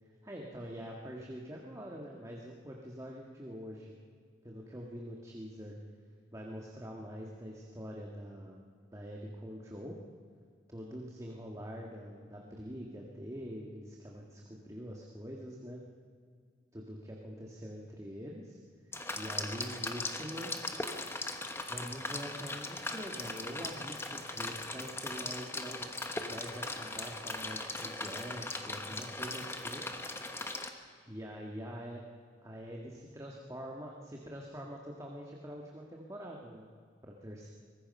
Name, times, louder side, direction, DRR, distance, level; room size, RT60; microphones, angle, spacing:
voice 1, 0.2-3.9 4.4-5.7 6.3-8.6 8.9-10.0 10.7-15.8 16.7-18.6 19.1-20.5 21.7-25.9 26.3-29.8 31.1-32.0 32.4-36.7 37.0-37.5, equal, 20° right, -1 dB, 1.8 m, -44 dB
sound 1, 18.9-30.7, left 2 dB, 15° left, 1.2 m, -39 dB
24.0 x 20.0 x 5.6 m, 2.1 s
head